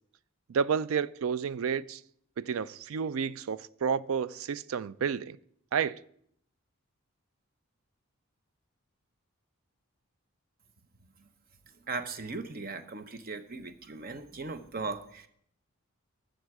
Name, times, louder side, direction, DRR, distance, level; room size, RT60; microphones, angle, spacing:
voice 1, 0.5-2.0 2.4-5.4 5.7-6.0, right 6 dB, 75° right, 0.4 m, -30 dB
voice 2, 11.9-15.3, right 3 dB, 45° right, 0.8 m, -38 dB
14.0 x 6.5 x 4.8 m
head